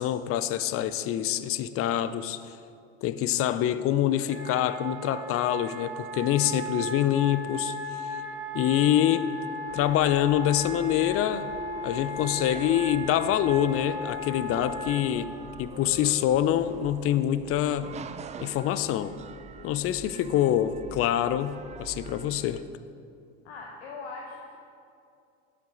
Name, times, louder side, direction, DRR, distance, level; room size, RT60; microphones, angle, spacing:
voice 1, 0.0-2.4 3.0-8.2 8.5-9.2 9.7-11.5 11.8-15.3 15.6-17.9 18.4-19.1 19.6-22.6, left 11 dB, 40° left, 14 dB, 0.6 m, -25 dB
Wind instrument woodwind instrument, 4.3-15.1, left 1 dB, 75° right, 2.7 m, -37 dB
sound 1, 9.7-22.7, right 6 dB, 20° right, 0.4 m, -44 dB
voice 2, 23.4-24.6, left 3 dB, 75° left, -2 dB, 1.3 m, -41 dB
11.5 x 9.0 x 3.9 m, 2.5 s
hypercardioid pair, 85°, 33 cm